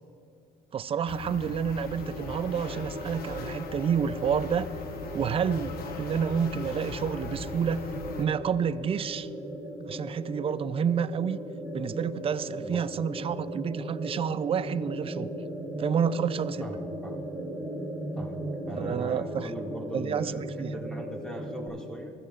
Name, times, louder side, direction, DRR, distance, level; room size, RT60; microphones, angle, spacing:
voice 1, 0.7-4.7 5.1-7.8 8.2-9.3 9.9-11.4 11.7-15.3 15.8-16.6 18.8-19.5 19.9-20.7, right 7 dB, 35° right, 16 dB, 0.4 m, -29 dB
sound 1, 1.1-8.3, left 4 dB, 65° left, 1.0 m, -39 dB
sound 2, 1.9-21.7, right 1 dB, 10° right, 3.1 m, -37 dB
voice 2, 16.6-17.2 18.2-18.4 18.7-22.1, right 1 dB, 5° left, -1 dB, 2.0 m, -40 dB
21.0 x 14.0 x 2.4 m, 2.5 s
cardioid pair, 110°, 17 cm